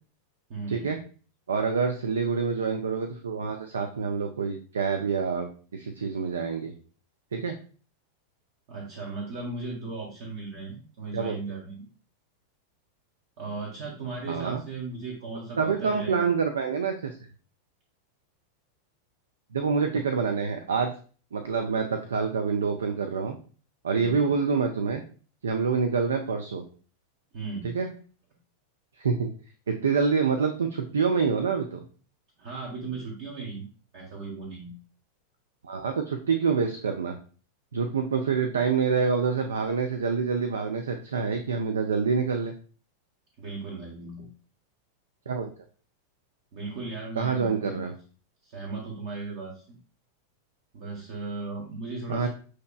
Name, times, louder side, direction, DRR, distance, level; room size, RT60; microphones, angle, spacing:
voice 1, 0.5-1.0 8.7-11.9 13.4-16.3 24.0-24.3 27.3-27.7 32.4-33.7 33.9-34.7 43.4-44.3 46.5-47.8 48.4-49.8 50.7-52.3, right 3 dB, 50° right, -2 dB, 1.0 m, -37 dB
voice 2, 1.5-6.7 7.3-7.6 11.1-11.4 14.3-14.6 15.6-17.2 19.5-20.9 21.3-23.4 23.8-25.0 25.4-26.6 27.7-27.9 29.0-29.3 29.7-31.8 35.6-37.2 37.7-42.5 45.3-45.5 47.2-47.9 52.1-52.3, right 5 dB, 70° right, 5 dB, 0.4 m, -26 dB
6.3 x 2.9 x 2.3 m, 0.40 s
figure-of-eight pair, 90°, 0 cm